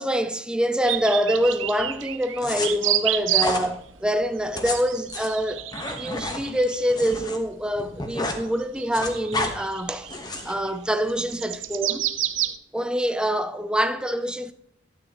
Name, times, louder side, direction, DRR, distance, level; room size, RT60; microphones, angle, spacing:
voice 1, 0.0-10.1 10.4-12.1 12.7-14.5, equal, 5° right, 0.6 m, -25 dB
sound 1, 0.8-3.8 4.1-12.6, right 12 dB, 70° right, 0.7 m, -30 dB
sound 2, 2.4-2.7 3.4-3.7 4.4-7.4 7.7-8.4 8.7-9.5 10.1-10.6, left 2 dB, 20° left, 1.2 m, -30 dB
12.0 x 9.2 x 3.0 m
head